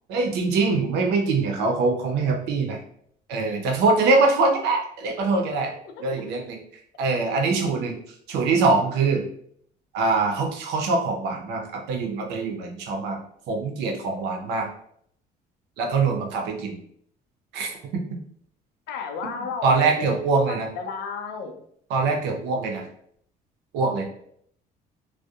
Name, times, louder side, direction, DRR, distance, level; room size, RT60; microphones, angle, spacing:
voice 1, 0.1-2.8 3.3-5.7 6.0-6.6 7.0-8.0 8.3-9.2 9.9-13.2 13.5-14.7 15.8-16.8 17.5-18.0 19.6-20.7 21.9-22.9 23.7-24.1, right 3 dB, 85° right, 3 dB, 0.6 m, -23 dB
voice 2, 18.9-21.6, left 5 dB, 85° left, 5 dB, 0.5 m, -33 dB
2.6 x 2.1 x 2.3 m, 0.65 s
cardioid pair, 110°, 17 cm